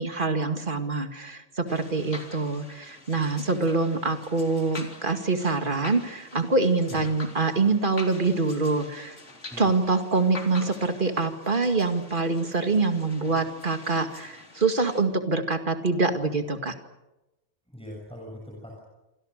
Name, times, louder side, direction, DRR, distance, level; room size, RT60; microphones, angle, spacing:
voice 1, 0.0-9.2 9.6-16.7, right 3 dB, 45° right, 7 dB, 2.3 m, -25 dB
sound 1, 1.7-15.0, left 2 dB, 90° left, 3.9 m, -45 dB
voice 2, 17.7-18.8, equal, 5° left, -2 dB, 6.8 m, -41 dB
28.0 x 25.5 x 6.6 m, 0.98 s
omnidirectional pair, 1.2 m